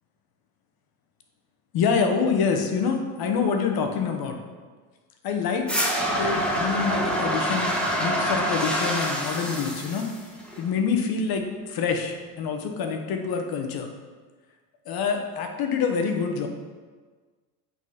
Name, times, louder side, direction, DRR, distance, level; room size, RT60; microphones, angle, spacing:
voice 1, 1.7-4.4 5.2-5.7 6.1-7.7 8.0-10.1 10.6-13.9 14.9-16.5, left 5 dB, 50° left, 4 dB, 1.1 m, -26 dB
sound 1, 5.7-10.7, equal, ahead, 1.2 m, -26 dB
8.1 x 4.2 x 5.0 m, 1.4 s
supercardioid pair, 105°, 47 cm